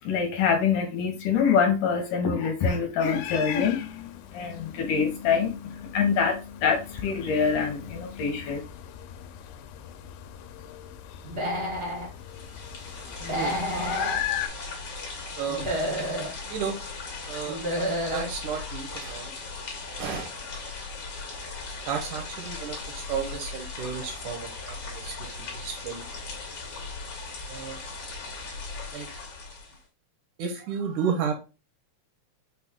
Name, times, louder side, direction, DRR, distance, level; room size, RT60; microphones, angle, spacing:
voice 1, 0.0-8.6, left 6 dB, 75° left, 3 dB, 2.2 m, -25 dB
sound 1, 3.0-14.5, left 11 dB, 90° left, 2.3 m, -38 dB
Human voice / Animal, 11.2-12.1 13.2-14.2 15.5-16.3 17.4-18.3, equal, 50° right, 0.6 m, -29 dB
sound 2, 12.2-29.8, left 3 dB, 55° left, 1.9 m, -38 dB
voice 2, 17.3-17.6 18.1-19.3 20.0-20.3 21.9-25.1 25.6-26.0 27.5-27.8 28.9-29.1 30.4-31.3, right 7 dB, 75° right, 3 dB, 1.9 m, -32 dB
5.7 x 2.3 x 3.5 m, 0.30 s
omnidirectional pair, 3.9 m